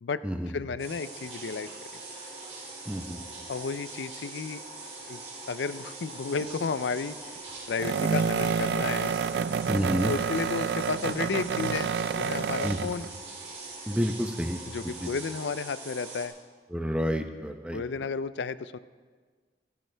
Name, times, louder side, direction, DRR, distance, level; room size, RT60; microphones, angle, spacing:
voice 1, 0.0-1.7 3.5-4.6 5.1-5.2 5.5-7.2 7.7-9.1 10.1-11.9 12.1-13.1 14.7-16.3 17.7-18.8, left 5 dB, 85° left, 15 dB, 0.4 m, -32 dB
sound 1, 0.8-16.3, right 3 dB, 35° right, 2.6 m, -42 dB
voice 2, 2.9-3.2 9.7-10.1 12.6-12.9 13.9-14.6 15.0-15.1 16.7-17.8, equal, 5° right, 5 dB, 0.7 m, -29 dB
sound 2, 6.4-6.7 7.8-13.1, right 6 dB, 75° right, 0.3 m, -28 dB
25.5 x 10.5 x 3.4 m, 1.5 s
head